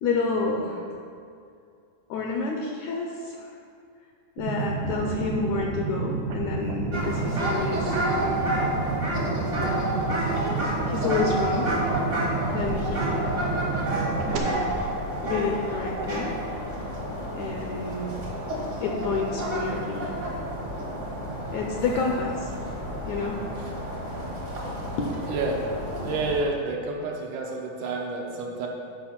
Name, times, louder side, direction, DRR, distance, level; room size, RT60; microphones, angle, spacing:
voice 1, 0.0-0.8 2.1-3.5 4.4-8.5 10.9-11.9 12.5-13.5 14.3-14.8 15.2-16.3 17.4-18.1 18.8-20.1 21.5-22.6 23.1-23.4 25.0-25.1, left 4 dB, 75° left, 1 dB, 1.7 m, -29 dB
sound 1, 4.4-14.4, right 4 dB, 90° right, 2.6 m, -30 dB
sound 2, 6.9-26.4, right 1 dB, 45° right, 0.9 m, -30 dB
voice 2, 26.0-28.7, right 3 dB, 75° right, 0 dB, 2.1 m, -29 dB
10.5 x 4.9 x 5.8 m, 2.4 s
omnidirectional pair, 3.9 m